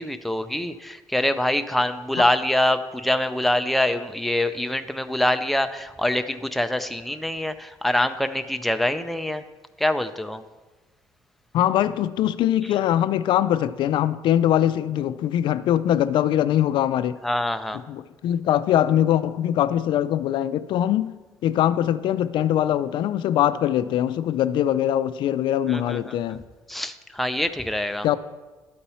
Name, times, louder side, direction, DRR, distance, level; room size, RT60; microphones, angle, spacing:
voice 1, 0.0-9.4 9.8-10.4 17.2-17.8 25.7-26.4 26.7-28.1, left 1 dB, ahead, 0.4 m, -25 dB
voice 2, 11.5-17.2 17.9-21.1 21.4-26.4 28.0-28.2, left 11 dB, 70° left, 0.4 m, -22 dB
12.0 x 4.3 x 5.5 m
cardioid pair, 150°, 8 cm